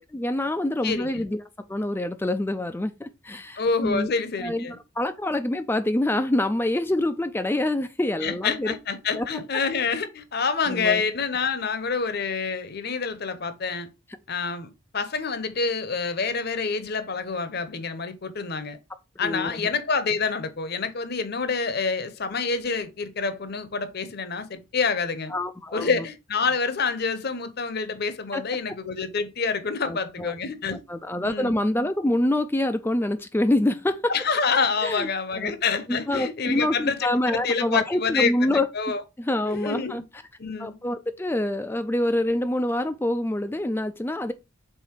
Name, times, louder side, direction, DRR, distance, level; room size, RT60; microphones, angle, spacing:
voice 1, 0.0-1.4 1.7-4.1 4.4-8.7 9.1-9.3 10.7-11.0 19.2-19.7 25.3-26.1 28.3-28.4 29.8-30.3 30.7-34.1 34.8-35.1 35.4-35.6 35.9-38.7 39.2-40.0 40.6-44.3, left 1 dB, 10° left, 0.3 m, -26 dB
voice 2, 0.8-1.2 3.6-4.8 8.2-13.9 14.3-18.8 19.2-25.3 25.7-30.8 31.2-31.6 34.1-39.0 39.5-40.0 40.4-40.7, left 5 dB, 50° left, 0.8 m, -27 dB
5.6 x 4.1 x 4.5 m
head